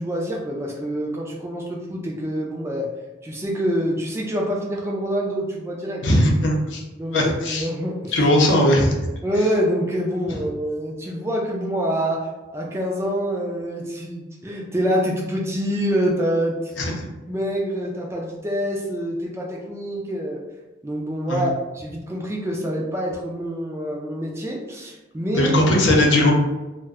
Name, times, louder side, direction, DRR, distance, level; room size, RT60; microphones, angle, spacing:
voice 1, 0.0-2.9 3.2-6.0 7.0-8.1 9.2-16.7 17.3-20.4 20.8-25.6, equal, 15° right, -2 dB, 0.3 m, -26 dB
voice 2, 6.0-6.8 7.1-7.7 8.1-8.9 16.8-17.1 21.3-21.5 25.4-26.3, left 1 dB, 70° left, 0 dB, 0.6 m, -18 dB
2.4 x 2.2 x 3.4 m, 1.1 s
head